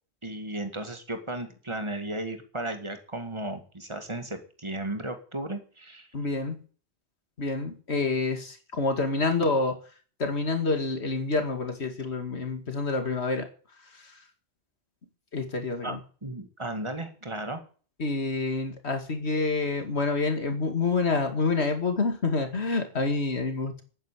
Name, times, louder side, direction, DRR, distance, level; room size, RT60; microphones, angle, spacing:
voice 1, 0.2-6.1 15.8-15.9 16.2-17.6, right 1 dB, 25° right, 7 dB, 2.1 m, -35 dB
voice 2, 6.1-6.6 7.4-9.8 10.2-13.5 15.3-16.0 18.0-23.8, left 3 dB, 75° left, 5 dB, 2.5 m, -27 dB
11.0 x 9.6 x 8.4 m, 0.40 s
omnidirectional pair, 1.1 m